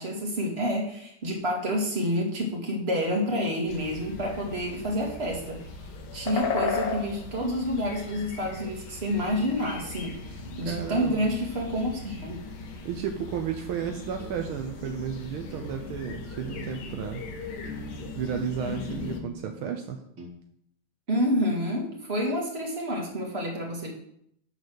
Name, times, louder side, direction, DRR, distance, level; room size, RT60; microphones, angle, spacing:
voice 1, 0.0-5.6 6.1-10.2 10.6-12.4 21.1-23.9, equal, 30° right, -1 dB, 2.1 m, -28 dB
sound 1, 3.7-19.2, left 4 dB, 70° left, 1.9 m, -37 dB
voice 2, 10.6-11.3 12.8-17.2 18.1-20.0, right 8 dB, 75° right, 4 dB, 1.6 m, -33 dB
sound 2, 14.2-14.4 14.8-15.1 15.5-15.7 16.4-17.1 17.6-18.4 18.9-19.7 20.2-20.3, right 1 dB, 55° right, 2.7 m, -42 dB
12.0 x 4.0 x 6.2 m, 0.71 s
omnidirectional pair, 2.4 m